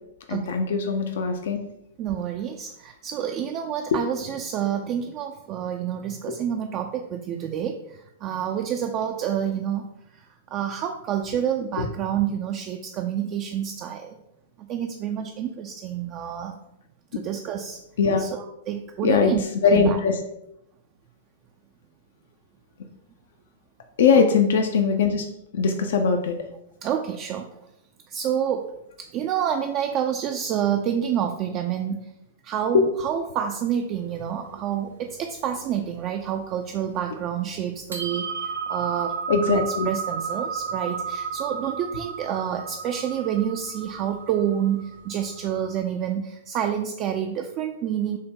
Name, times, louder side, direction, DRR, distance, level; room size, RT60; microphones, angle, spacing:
voice 1, 0.3-1.6 3.9-4.0 6.3-6.4 11.8-11.9 18.0-18.2 19.0-19.3 19.6-20.1 24.0-25.3 25.5-26.3 32.7-32.9 39.3-39.9, left 5 dB, 55° left, 5 dB, 0.4 m, -20 dB
voice 2, 2.0-10.3 10.5-14.2 14.6-16.6 17.1-17.8 18.2-19.4 19.7-20.0 24.1-24.3 26.8-27.5 28.1-28.7 29.0-32.1 32.4-38.3 38.7-48.2, right 9 dB, 35° right, 4 dB, 0.3 m, -28 dB
sound 1, 33.9-36.0 36.2-36.4 36.8-37.3 37.7-45.8, right 6 dB, 75° right, 0.7 m, -33 dB
6.2 x 2.1 x 3.7 m, 0.86 s
figure-of-eight pair, 105°, 0 cm